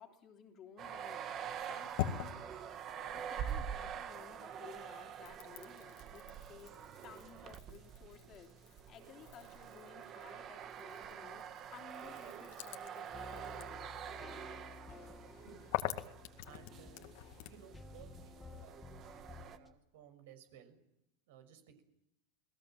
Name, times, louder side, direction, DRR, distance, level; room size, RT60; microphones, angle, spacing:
voice 1, 0.0-2.3 3.1-6.8 7.0-13.9, left 7 dB, 25° left, 4 dB, 3.2 m, -56 dB
sound 1, 0.8-19.6, right 8 dB, 30° right, 1.5 m, -46 dB
sound 2, 1.4-4.1 4.4-17.7, left 13 dB, 55° left, 2.1 m, -46 dB
sound 3, 13.1-19.7, left 4 dB, 10° left, 1.8 m, -54 dB
voice 2, 16.5-17.1 17.4-20.8 21.3-21.8, right 9 dB, 70° right, 9 dB, 6.1 m, -59 dB
29.5 x 20.0 x 7.6 m, 0.80 s
supercardioid pair, 165°, 0 cm